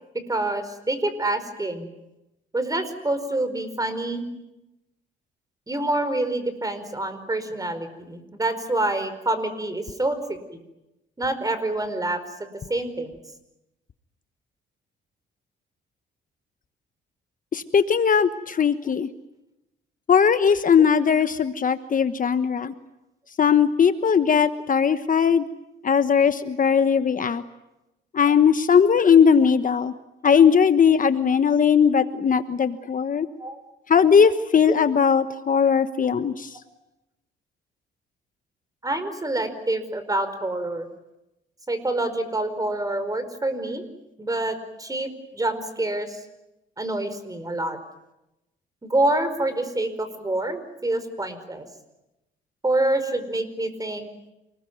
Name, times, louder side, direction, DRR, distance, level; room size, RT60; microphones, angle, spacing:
voice 1, 0.3-1.9 2.5-4.3 5.7-10.4 11.2-12.2 12.7-13.2 33.4-33.6 38.8-40.9 41.7-43.8 44.2-46.2 46.8-47.8 48.8-51.6 52.6-54.1, right 2 dB, 20° right, 11 dB, 4.9 m, -26 dB
voice 2, 17.5-19.1 20.1-22.7 23.4-25.4 25.8-27.4 28.1-29.9 30.2-33.3 33.9-36.6, left 7 dB, 40° left, 11 dB, 1.2 m, -19 dB
28.0 x 20.5 x 9.4 m, 0.94 s
cardioid pair, 90°, 20 cm